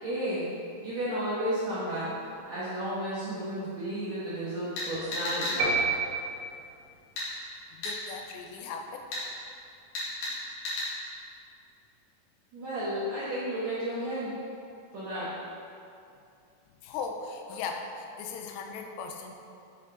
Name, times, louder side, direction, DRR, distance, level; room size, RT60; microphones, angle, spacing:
voice 1, 0.0-0.5 0.8-2.1 2.5-5.7 12.5-14.3 14.9-15.3, equal, 75° right, -10 dB, 1.6 m, -32 dB
sound 1, 4.8-5.6 7.2-7.3 7.8-8.0 9.1-9.2 10.0-10.3 10.7-10.9, left 2 dB, 70° left, 3.8 m, -32 dB
sound 2, 5.6-6.8, right 3 dB, 60° right, 2.1 m, -28 dB
voice 2, 7.8-9.0 16.8-19.3, left 5 dB, 90° left, 4 dB, 2.8 m, -38 dB
8.5 x 4.7 x 3.7 m, 2.5 s
omnidirectional pair, 4.9 m